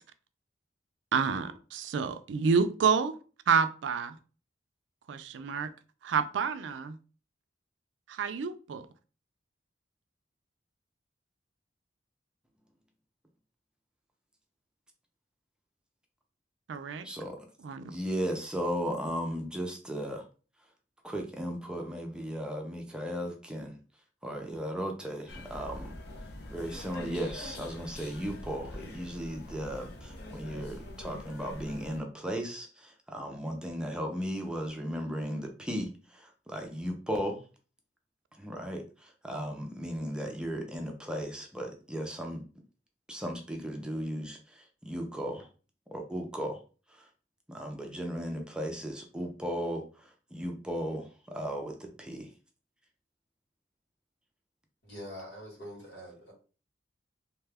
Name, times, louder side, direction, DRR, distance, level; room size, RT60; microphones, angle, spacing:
voice 1, 1.1-3.1 3.5-4.1 5.1-5.7 6.0-7.0 8.1-8.9 16.7-17.1 17.6-17.8, right 6 dB, 80° right, 10 dB, 0.4 m, -28 dB
voice 2, 17.0-17.4 17.9-20.2 21.0-23.8 24.2-25.9 26.5-37.4 38.4-42.4 43.1-45.5 45.9-46.6 47.0-47.1 47.5-52.3, equal, 5° right, 2 dB, 0.4 m, -36 dB
sound 1, 25.3-32.0, left 1 dB, 60° left, 0.6 m, -44 dB
voice 3, 54.8-56.3, equal, 80° left, -2 dB, 1.6 m, -44 dB
2.7 x 2.2 x 3.3 m, 0.36 s
head